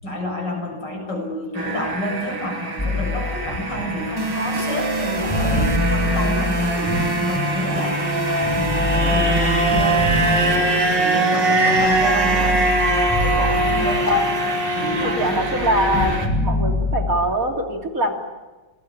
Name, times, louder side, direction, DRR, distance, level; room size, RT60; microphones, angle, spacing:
voice 1, 0.0-12.7 13.2-15.4, equal, 80° left, 2 dB, 8.0 m, -29 dB
sound 1, 1.6-16.3, right 2 dB, 85° right, 3.8 m, -22 dB
sound 2, 2.8-7.9 8.4-11.1 11.6-14.4 14.7-17.4, left 2 dB, 10° left, 3.8 m, -26 dB
sound 3, 4.2-12.2, right 1 dB, 15° right, 0.9 m, -27 dB
voice 2, 13.7-14.4 14.9-18.1, equal, 50° right, 3 dB, 3.4 m, -23 dB
26.5 x 19.5 x 8.7 m, 1.2 s
omnidirectional pair, 1.9 m